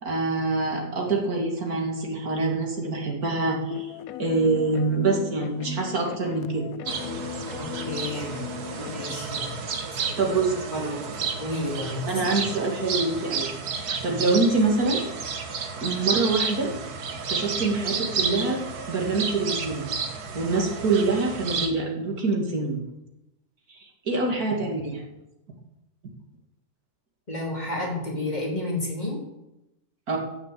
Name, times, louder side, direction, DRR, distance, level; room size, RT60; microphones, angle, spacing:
voice 1, 0.0-3.9 4.2-6.7 10.2-10.5 12.1-15.0 15.8-16.7 17.3-18.6 18.9-19.9 20.3-22.8 23.7-25.0 30.1-30.2, right 3 dB, 70° right, 0 dB, 3.0 m, -25 dB
sound 1, 3.7-9.2, left 10 dB, 70° left, 1.1 m, -37 dB
sound 2, 6.9-21.7, right 5 dB, 90° right, 1.9 m, -31 dB
voice 2, 7.6-8.4 8.8-9.5 10.1-10.3 10.7-11.0 11.4-12.2 14.1-14.2 27.3-29.2, left 2 dB, 25° left, -2 dB, 3.8 m, -31 dB
14.0 x 6.8 x 8.6 m, 0.94 s
omnidirectional pair, 1.6 m